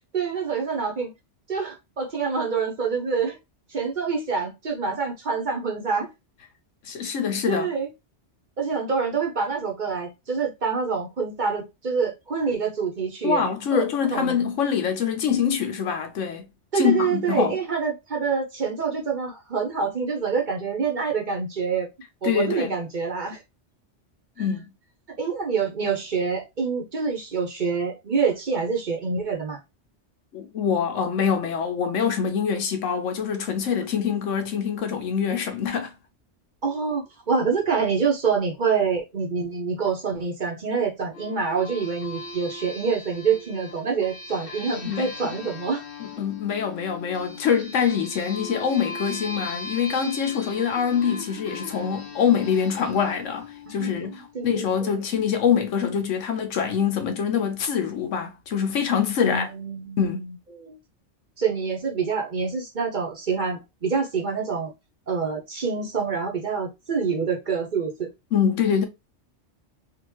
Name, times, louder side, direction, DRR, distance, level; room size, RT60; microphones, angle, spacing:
voice 1, 0.1-1.1 1.5-3.4 3.7-6.1 7.5-7.9 8.6-13.5 13.7-14.4 16.7-21.9 22.2-23.4 25.2-29.6 36.6-45.8 53.7-55.0 59.2-60.8 61.4-64.7 65.1-68.1, right 5 dB, 45° right, 0.9 m, -26 dB
voice 2, 6.9-7.7 13.2-16.4 16.8-17.6 22.2-22.7 24.4-24.7 30.3-35.9 44.7-45.3 46.0-59.5 60.0-60.2 68.3-68.9, left 7 dB, 80° left, 1.1 m, -25 dB
sound 1, 41.1-54.3, left 3 dB, 50° left, 1.2 m, -39 dB
3.6 x 2.4 x 3.0 m
omnidirectional pair, 1.3 m